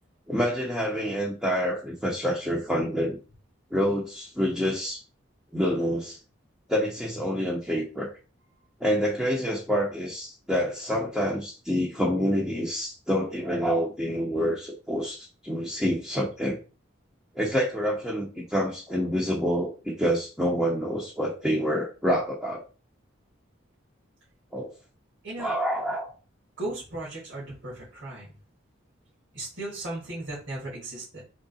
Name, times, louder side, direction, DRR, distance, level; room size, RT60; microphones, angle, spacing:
voice 1, 0.3-3.2 3.7-5.0 5.5-6.2 6.7-8.1 8.8-16.6 17.3-22.6 24.5-24.7 25.4-26.1, equal, 5° right, -4 dB, 0.8 m, -27 dB
voice 2, 26.6-28.3 29.3-31.2, right 2 dB, 70° right, -7 dB, 1.9 m, -36 dB
3.7 x 3.3 x 4.0 m, 0.34 s
head